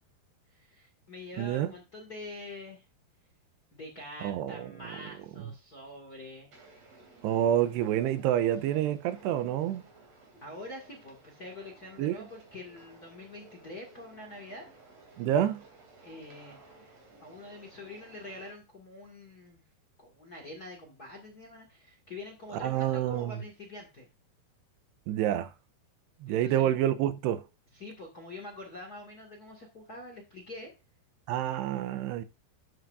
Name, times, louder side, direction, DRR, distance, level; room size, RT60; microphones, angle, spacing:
voice 1, 0.5-2.8 3.7-6.5 10.4-14.7 16.0-19.6 20.0-24.1 26.3-26.7 27.7-30.7, left 2 dB, 35° left, 1.5 m, -45 dB
voice 2, 1.4-1.7 4.2-4.7 7.2-9.8 12.0-12.3 15.2-15.6 22.6-23.4 25.1-25.5 26.2-27.4 31.3-32.2, right 11 dB, 85° right, 2.8 m, -28 dB
sound 1, 6.5-18.5, right 3 dB, 40° right, 3.7 m, -56 dB
12.5 x 8.0 x 2.6 m
omnidirectional pair, 4.9 m